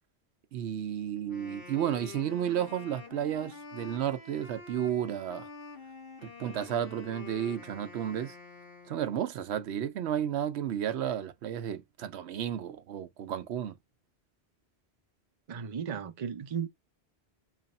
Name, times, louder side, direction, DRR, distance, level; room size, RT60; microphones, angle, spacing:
voice 1, 0.5-5.5 6.2-8.4 8.9-13.8, right 10 dB, 85° right, 0.9 m, -32 dB
Wind instrument woodwind instrument, 1.2-9.3, left 4 dB, 60° left, 1.2 m, -48 dB
voice 2, 15.5-16.7, right 7 dB, 40° right, 0.5 m, -35 dB
3.2 x 2.5 x 4.1 m
omnidirectional pair, 1.1 m